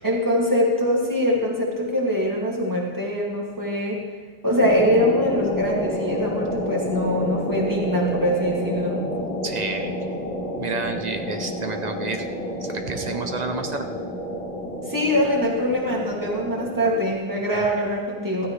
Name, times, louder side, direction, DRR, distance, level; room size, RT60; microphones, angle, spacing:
voice 1, 0.0-4.0 4.4-9.0 14.9-18.5, equal, 20° right, -3 dB, 2.4 m, -23 dB
sound 1, 4.6-17.1, equal, 35° left, 2.2 m, -29 dB
voice 2, 9.4-9.9 10.6-12.3 12.6-14.0 17.5-17.7, right 3 dB, 45° right, 6 dB, 0.8 m, -30 dB
15.0 x 14.5 x 3.3 m, 1.4 s
omnidirectional pair, 1.1 m